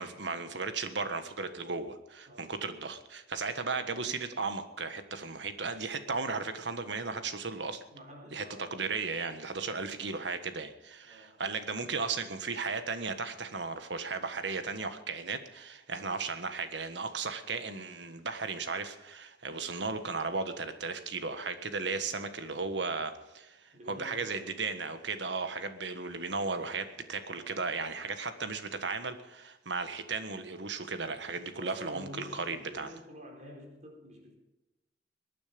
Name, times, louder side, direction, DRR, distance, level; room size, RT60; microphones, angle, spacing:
voice 1, 0.0-7.8 8.3-32.9, right 4 dB, 80° right, 9 dB, 1.5 m, -35 dB
voice 2, 7.9-9.2 11.0-11.4 15.9-16.2 23.7-24.5 27.3-27.8 31.4-34.4, equal, 40° right, 1 dB, 4.4 m, -49 dB
22.0 x 9.5 x 5.3 m, 1.0 s
head